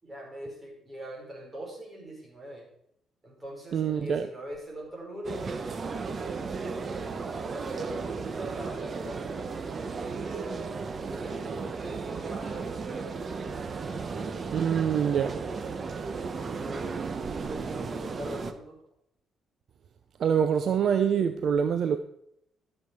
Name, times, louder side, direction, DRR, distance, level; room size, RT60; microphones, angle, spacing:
voice 1, 0.0-2.7 3.2-7.1 7.5-10.6 11.1-14.3 16.2-17.0 17.4-18.8 20.7-21.1, right 1 dB, 25° right, 5.3 m, -43 dB
voice 2, 3.7-4.3 14.5-15.4 20.2-22.0, right 7 dB, 60° right, 0.7 m, -25 dB
sound 1, 5.2-18.5, right 4 dB, 40° right, 1.0 m, -35 dB
13.0 x 7.7 x 4.8 m
cardioid pair, 90°, 0 cm